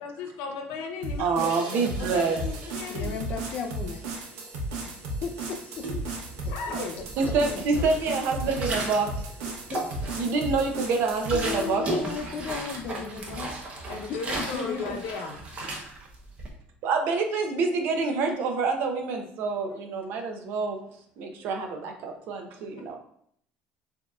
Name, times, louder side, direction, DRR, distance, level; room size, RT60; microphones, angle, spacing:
voice 1, 0.0-3.2 6.4-7.0 7.5-7.9 13.9-15.4, left 4 dB, 85° left, 4 dB, 0.8 m, -36 dB
sound 1, 1.0-11.7, right 1 dB, 90° right, 1.0 m, -35 dB
voice 2, 1.2-2.4 7.2-9.2 10.2-11.9 16.8-20.8 21.2-22.9, right 4 dB, 65° right, 4 dB, 0.8 m, -27 dB
voice 3, 2.9-4.0 4.8-5.0 5.2-6.1 6.4-7.4 9.7-9.8 11.3-13.7 14.1-15.0 18.2-18.3, left 5 dB, 45° left, 4 dB, 0.6 m, -36 dB
sound 2, 5.8-6.6 6.9-9.2 9.5-10.4 10.8-16.5, right 2 dB, 30° right, 0.9 m, -35 dB
6.9 x 2.8 x 2.4 m, 0.68 s
cardioid pair, 140°, 4 cm